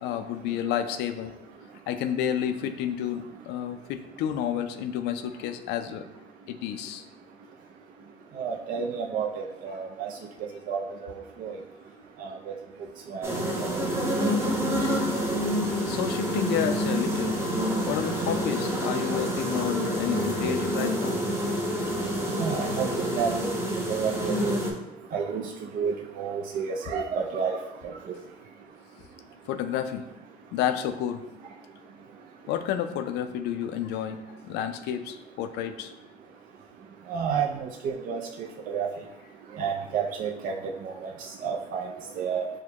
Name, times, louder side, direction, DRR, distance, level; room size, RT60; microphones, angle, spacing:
voice 1, 0.0-1.3 1.9-6.1 6.5-7.1 15.9-17.4 17.8-21.2 29.5-30.0 30.5-31.2 32.5-35.9, left 9 dB, 85° left, 9 dB, 0.4 m, -30 dB
voice 2, 8.3-10.1 10.7-11.1 11.4-11.6 12.2-12.4 13.1-13.3 13.6-13.7 22.4-22.9 23.2-23.5 23.9-24.6 25.1-27.9 37.1-38.9 39.6-40.5 40.8-41.1 41.4-41.9 42.2-42.4, right 6 dB, 55° right, 0 dB, 0.4 m, -30 dB
sound 1, 13.2-24.7, equal, 15° right, 0.9 m, -27 dB
6.3 x 2.1 x 2.9 m, 0.92 s
cardioid pair, 110°, 17 cm